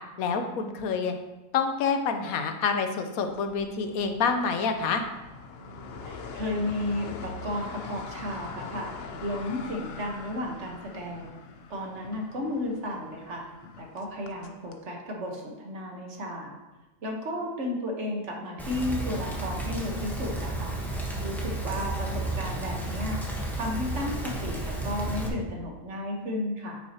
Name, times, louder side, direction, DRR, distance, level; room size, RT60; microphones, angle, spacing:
voice 1, 0.2-1.1 1.5-5.0, left 5 dB, 80° left, 6 dB, 1.2 m, -27 dB
sound 1, 3.3-14.8, left 4 dB, 55° left, 0.7 m, -43 dB
voice 2, 6.0-8.9 9.2-11.3 11.7-13.4 13.8-16.5 17.0-20.7 21.2-23.2 23.5-26.8, left 1 dB, 55° right, 0 dB, 1.5 m, -33 dB
Rain, 18.6-25.3, right 2 dB, ahead, 0.9 m, -32 dB
9.3 x 6.1 x 2.9 m, 1.1 s
omnidirectional pair, 1.5 m